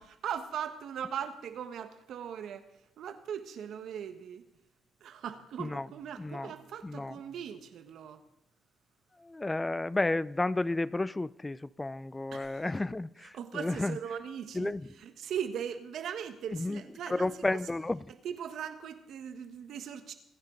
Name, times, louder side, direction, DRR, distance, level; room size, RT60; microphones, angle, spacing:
voice 1, 0.0-2.6 3.0-4.4 5.0-8.2 12.3-12.7 13.2-17.6 18.1-20.1, right 8 dB, 70° right, 1.5 m, -39 dB
voice 2, 6.2-6.5 6.8-7.2 9.2-14.0 14.5-14.8 16.5-16.8 17.1-18.0, left 2 dB, 15° left, 0.4 m, -32 dB
25.5 x 11.0 x 4.0 m
cardioid pair, 90°, 0 cm